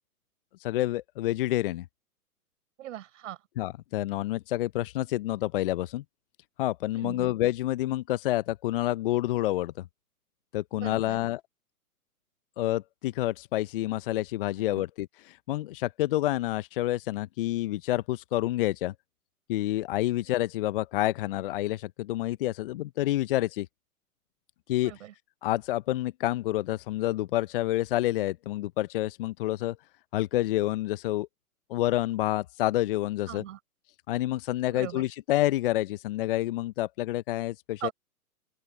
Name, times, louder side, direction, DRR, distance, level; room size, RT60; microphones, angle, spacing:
voice 1, 0.6-1.8 3.6-6.0 6.6-9.9 10.5-11.4 12.6-18.9 19.5-23.7 24.7-24.9 25.4-29.8 30.1-31.3 31.7-33.4 34.1-37.9, left 15 dB, 35° left, 0.7 m, -28 dB
voice 2, 2.8-3.4 6.9-7.3 10.7-11.2 24.8-25.1 33.3-33.6 34.7-35.1 37.8-37.9, right 12 dB, 55° right, 4.6 m, -40 dB
open air
hypercardioid pair, 125°, 45 cm